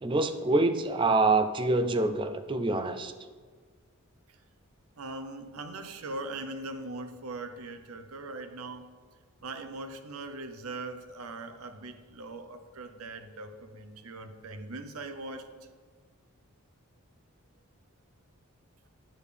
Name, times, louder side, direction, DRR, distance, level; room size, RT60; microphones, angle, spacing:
voice 1, 0.0-3.1, right 2 dB, 20° right, 8 dB, 0.3 m, -26 dB
voice 2, 5.0-8.9 9.4-15.5, right 2 dB, 75° right, 7 dB, 0.6 m, -40 dB
8.9 x 6.5 x 3.4 m, 1.5 s
head